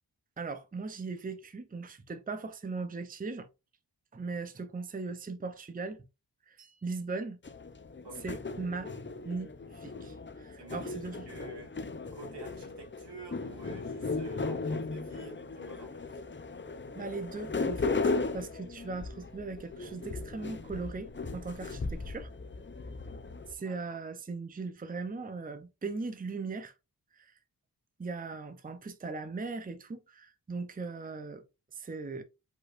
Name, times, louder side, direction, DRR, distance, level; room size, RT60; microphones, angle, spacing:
voice 1, 0.4-3.5 4.1-6.0 6.5-7.4 8.2-8.9 9.2-11.2 17.0-18.0 18.3-22.3 23.5-26.7 27.2-27.3 28.0-31.4 31.8-32.2, right 4 dB, 20° right, 0.6 m, -39 dB
sound 1, 7.4-23.5, left 3 dB, 30° left, 0.6 m, -37 dB
voice 2, 8.0-8.4 10.6-10.9 11.3-11.7 12.1-16.2 23.6-24.0, right 3 dB, 85° right, 2.1 m, -49 dB
5.1 x 4.1 x 2.5 m
wide cardioid pair, 75°, 40 cm